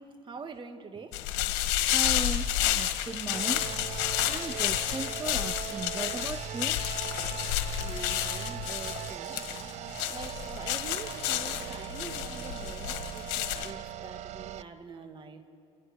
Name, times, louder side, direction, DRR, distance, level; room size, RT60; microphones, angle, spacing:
voice 1, 0.0-1.6 7.8-9.4 10.1-15.5, right 4 dB, 40° right, 2.3 m, -45 dB
sound 1, 1.1-13.7, left 13 dB, 85° left, 1.7 m, -31 dB
voice 2, 1.9-3.6 4.3-6.8, right 4 dB, 20° right, 0.5 m, -37 dB
sound 2, 3.3-14.6, right 11 dB, 60° right, 0.7 m, -40 dB
29.0 x 28.5 x 4.6 m
supercardioid pair, 80°, 13 cm